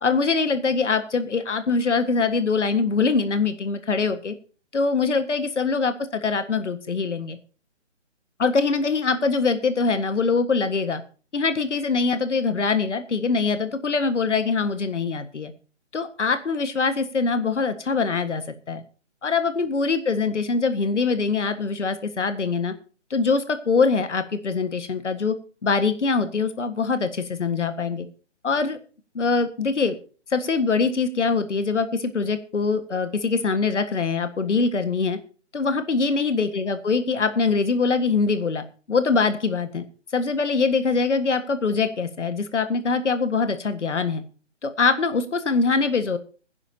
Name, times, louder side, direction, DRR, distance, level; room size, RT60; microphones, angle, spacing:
voice 1, 0.0-4.3 4.7-5.9 6.2-7.4 8.4-11.0 11.3-15.5 15.9-18.8 19.2-22.7 23.1-25.4 25.6-28.1 28.4-28.8 29.2-30.0 30.3-35.2 35.5-39.8 40.1-44.2 44.6-46.2, left 4 dB, 70° left, 10 dB, 1.7 m, -23 dB
21.0 x 10.5 x 2.8 m, 0.37 s
hypercardioid pair, 170°, 37 cm